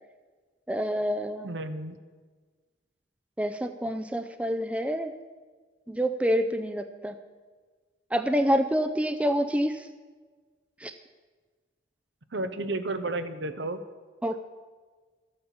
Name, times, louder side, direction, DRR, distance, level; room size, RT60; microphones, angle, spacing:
voice 1, 0.7-1.5 3.4-5.1 5.9-7.1 8.1-9.9 10.8-10.9 14.2-14.4, equal, 5° right, 8 dB, 0.5 m, -27 dB
voice 2, 1.4-2.0 12.3-13.8, right 2 dB, 75° right, 10 dB, 0.9 m, -32 dB
12.0 x 8.8 x 7.1 m, 1.4 s
head